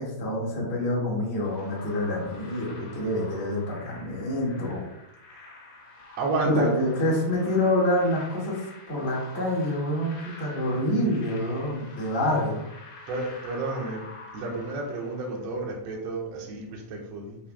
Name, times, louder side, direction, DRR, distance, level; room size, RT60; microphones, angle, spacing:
voice 1, 0.0-4.8 5.4-5.5 6.4-12.6, left 1 dB, 70° left, -5 dB, 0.6 m, -27 dB
sound 1, 1.4-15.7, left 2 dB, 55° left, 3.0 m, -47 dB
voice 2, 6.2-6.7 13.1-14.0 14.3-17.4, right 3 dB, 70° right, -1 dB, 1.6 m, -31 dB
7.0 x 6.0 x 2.2 m, 0.83 s
omnidirectional pair, 4.6 m